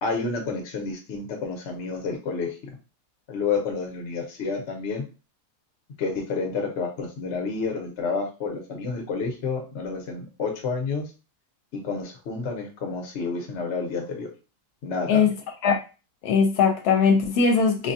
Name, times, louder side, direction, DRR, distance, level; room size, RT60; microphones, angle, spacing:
voice 1, 0.0-2.6 3.3-5.0 6.0-11.1 11.7-14.3 14.8-15.3, left 4 dB, 55° left, 1.0 m, -29 dB
voice 2, 16.2-17.9, left 5 dB, 80° left, 1.1 m, -20 dB
3.9 x 2.2 x 2.6 m
omnidirectional pair, 1.7 m